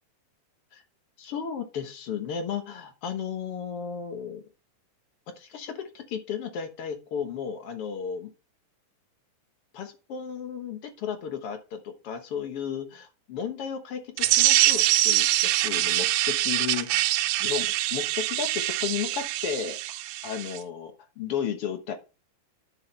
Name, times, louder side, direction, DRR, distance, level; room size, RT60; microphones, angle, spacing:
voice 1, 1.2-4.4 5.4-8.3 9.7-21.9, left 8 dB, 60° left, 6 dB, 1.8 m, -34 dB
sound 1, 14.2-20.6, right 15 dB, 90° right, 2.2 m, -24 dB
11.5 x 6.5 x 3.3 m, 0.31 s
omnidirectional pair, 3.6 m